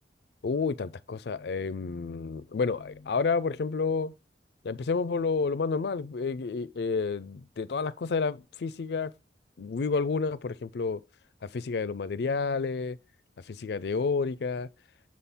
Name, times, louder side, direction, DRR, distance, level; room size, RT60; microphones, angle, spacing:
voice 1, 0.4-4.1 4.6-9.1 9.6-11.0 11.5-13.0 13.5-14.7, left 4 dB, 65° left, 0.4 m, -30 dB
7.4 x 4.2 x 3.5 m
head